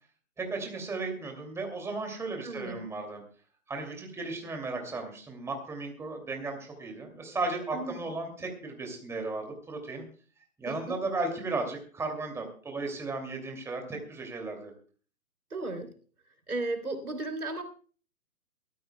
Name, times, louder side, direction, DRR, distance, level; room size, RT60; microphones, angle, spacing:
voice 1, 0.4-3.2 3.7-10.0 10.6-14.7, right 3 dB, 5° right, 3 dB, 2.5 m, -35 dB
voice 2, 2.4-2.8 7.7-7.9 10.6-11.0 15.5-15.9 16.5-17.6, right 2 dB, 85° right, 7 dB, 3.1 m, -35 dB
22.5 x 14.0 x 2.2 m, 0.40 s
figure-of-eight pair, 130°, 42 cm